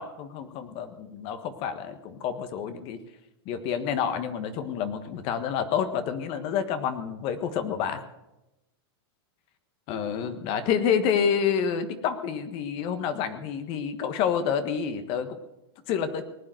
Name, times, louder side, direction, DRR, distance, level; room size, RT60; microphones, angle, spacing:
voice 1, 0.0-3.0 3.4-8.0 9.9-15.4 15.9-16.2, left 7 dB, 40° left, 9 dB, 1.5 m, -28 dB
19.0 x 8.9 x 7.7 m, 0.93 s
supercardioid pair, 135°, 14 cm